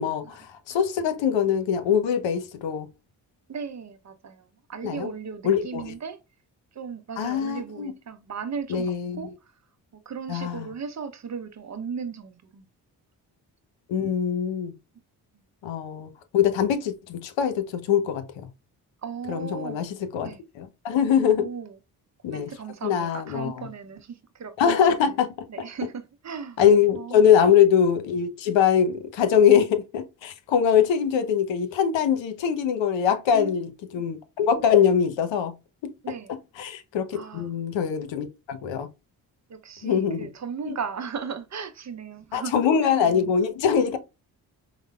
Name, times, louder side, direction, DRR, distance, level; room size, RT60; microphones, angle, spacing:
voice 1, 0.0-2.9 4.8-5.1 5.4-5.9 7.2-7.9 8.7-9.2 10.3-10.7 13.9-14.7 15.6-18.5 19.3-21.5 22.2-22.5 22.8-23.7 24.6-25.5 26.6-35.5 35.8-35.9 36.6-38.9 39.8-40.3 40.6-40.7 42.3-44.0, left 8 dB, 70° left, 0.7 m, -23 dB
voice 2, 3.5-6.2 6.7-9.3 10.1-12.7 19.0-19.9 20.2-20.4 21.3-21.8 22.3-24.5 25.5-26.6 26.9-27.3 33.3-34.0 36.0-36.3 37.1-37.5 39.5-42.5 42.8-43.0, right 6 dB, 35° right, 0.6 m, -36 dB
4.7 x 2.1 x 2.2 m
hypercardioid pair, 45°, 47 cm